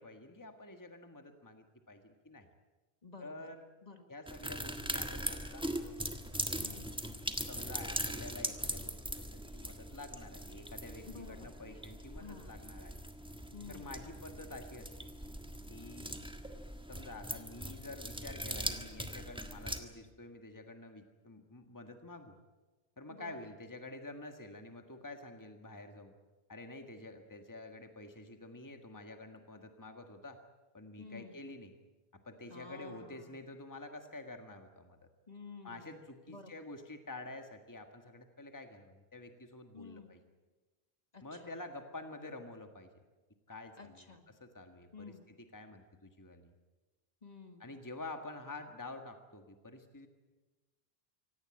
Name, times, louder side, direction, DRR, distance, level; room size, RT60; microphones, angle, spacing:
voice 1, 0.0-2.5 3.2-3.7 4.1-6.0 7.5-12.9 13.7-15.1 15.7-16.2 16.9-22.4 23.0-26.2 26.5-30.4 30.7-31.7 32.1-35.1 35.6-40.2 41.2-42.9 43.5-46.5 47.6-50.1, left 2 dB, 20° left, 6 dB, 1.6 m, -49 dB
voice 2, 3.0-3.5 3.8-4.2 6.6-7.0 11.0-11.5 12.2-12.5 13.5-14.0 23.1-23.5 31.0-31.4 32.5-33.5 35.3-36.6 39.7-40.1 41.1-41.5 43.8-44.2 44.9-45.3 47.2-47.7, left 4 dB, 40° left, 6 dB, 1.9 m, -52 dB
sound 1, 4.3-19.8, equal, 5° right, 1.6 m, -41 dB
25.0 x 18.0 x 8.8 m, 1.2 s
omnidirectional pair, 1.1 m